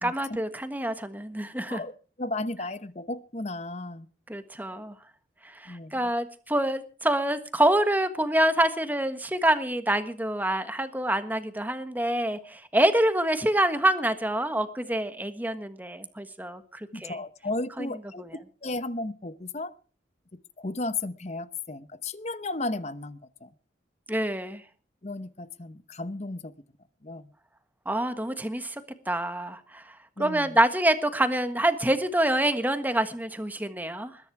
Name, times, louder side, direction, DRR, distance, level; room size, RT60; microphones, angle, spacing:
voice 1, 0.0-1.8 4.3-4.9 5.4-17.2 17.8-17.9 18.2-18.4 24.1-24.6 27.8-28.7 29.1-34.2, right 1 dB, 10° right, 9 dB, 1.4 m, -26 dB
voice 2, 2.2-4.1 5.7-6.0 16.9-18.2 18.6-19.7 20.6-23.5 25.0-26.5 27.0-27.3 30.2-30.6, left 2 dB, 35° left, 14 dB, 0.9 m, -34 dB
21.0 x 10.5 x 4.8 m, 0.38 s
head